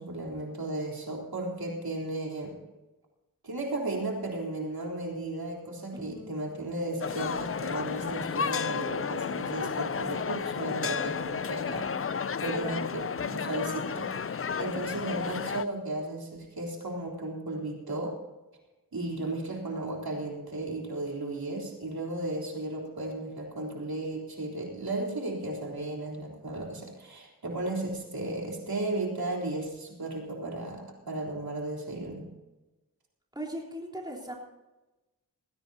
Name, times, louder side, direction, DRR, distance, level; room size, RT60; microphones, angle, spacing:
voice 1, 0.0-2.6 3.4-11.9 12.4-18.1 18.9-32.2, right 2 dB, 75° right, -1 dB, 3.8 m, -35 dB
voice 2, 5.9-6.5 12.5-13.0 33.3-34.3, right 1 dB, 10° right, -1 dB, 4.1 m, -39 dB
sound 1, 7.0-15.7, left 6 dB, 40° left, 0.5 m, -32 dB
19.5 x 17.0 x 2.8 m, 1.1 s
wide cardioid pair, 60°, 36 cm